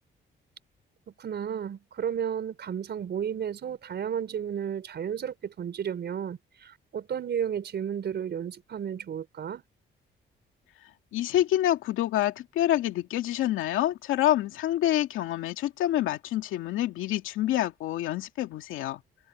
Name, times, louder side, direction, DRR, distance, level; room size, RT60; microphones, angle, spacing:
voice 1, 1.2-9.6, right 8 dB, 60° right, 5.0 m, -33 dB
voice 2, 11.1-19.0, left 13 dB, 85° left, 2.4 m, -27 dB
cardioid pair, 90°, 20 cm